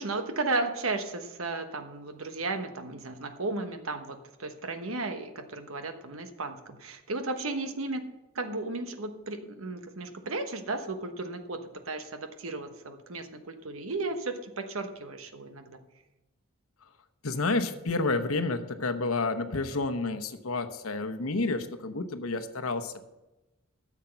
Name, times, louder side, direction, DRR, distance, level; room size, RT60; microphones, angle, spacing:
voice 1, 0.0-8.0 8.3-11.6 11.9-15.8, right 3 dB, 80° right, 7 dB, 1.2 m, -34 dB
voice 2, 17.2-23.0, left 3 dB, 85° left, 9 dB, 1.0 m, -30 dB
13.0 x 7.4 x 5.8 m, 1.0 s
head